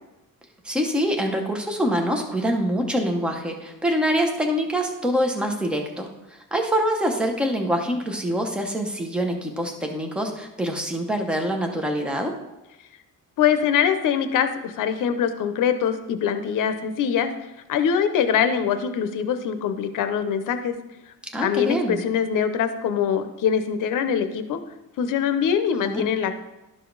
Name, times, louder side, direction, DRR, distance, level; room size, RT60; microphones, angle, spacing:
voice 1, 0.6-12.3 21.3-22.0 25.8-26.0, equal, 5° right, 3 dB, 0.7 m, -25 dB
voice 2, 13.4-17.3 17.7-20.7 21.4-24.6 25.0-26.3, left 8 dB, 65° left, 9 dB, 0.7 m, -23 dB
12.0 x 4.9 x 3.9 m, 0.98 s
cardioid pair, 175°, 34 cm